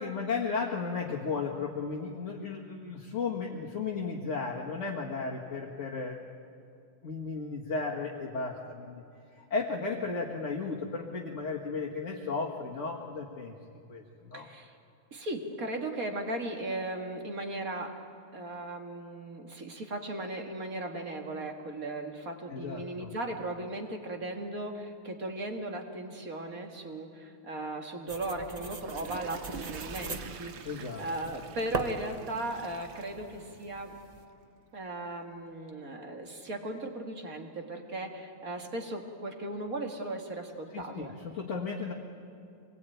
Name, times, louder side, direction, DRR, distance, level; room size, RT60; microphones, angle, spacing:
voice 1, 0.0-6.2 7.0-9.0 9.3-13.6 13.9-14.5 22.5-23.1 30.6-31.0 40.7-41.9, left 4 dB, 35° left, -4 dB, 1.8 m, -34 dB
voice 2, 14.3-14.7 15.1-17.9 18.3-30.5 31.0-33.9 34.7-41.1, right 2 dB, 40° right, 3 dB, 2.3 m, -37 dB
sound 1, 28.1-34.3, right 2 dB, 25° right, 0.9 m, -41 dB
Water / Toilet flush, 28.6-33.9 34.3-34.4, right 6 dB, 90° right, 2.1 m, -47 dB
25.0 x 20.0 x 9.2 m, 2.5 s
omnidirectional pair, 2.3 m